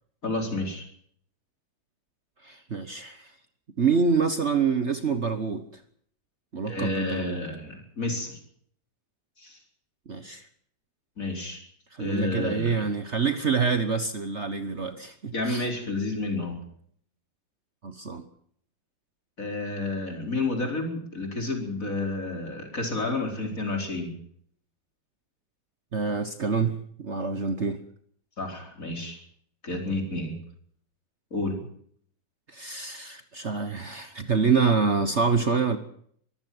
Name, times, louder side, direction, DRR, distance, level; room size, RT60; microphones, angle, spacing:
voice 1, 0.2-0.9 6.7-8.4 9.4-9.6 11.2-11.6 12.0-12.9 15.3-16.6 19.4-24.1 28.4-29.2 29.6-30.4 31.3-31.6, left 2 dB, 45° left, 3 dB, 5.0 m, -30 dB
voice 2, 2.4-3.3 3.8-5.6 6.5-7.4 10.1-10.5 11.9-15.7 17.8-18.2 25.9-27.8 32.5-35.8, right 5 dB, 45° right, 10 dB, 1.4 m, -26 dB
23.5 x 15.0 x 7.8 m, 0.63 s
omnidirectional pair, 1.9 m